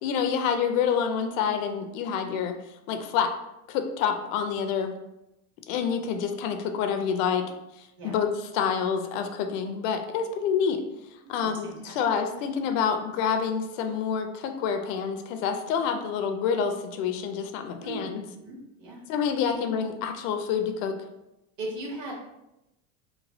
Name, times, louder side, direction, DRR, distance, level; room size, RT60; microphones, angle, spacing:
voice 1, 0.0-2.6 2.9-3.3 3.7-4.9 5.7-7.5 7.8-10.8 11.3-18.2 19.1-20.9, left 7 dB, 75° left, 6 dB, 0.5 m, -27 dB
voice 2, 11.4-11.9 17.8-19.0 19.4-19.5 21.6-22.2, right 2 dB, 50° right, -2 dB, 1.2 m, -38 dB
3.0 x 2.3 x 2.6 m, 0.92 s
supercardioid pair, 105°, 39 cm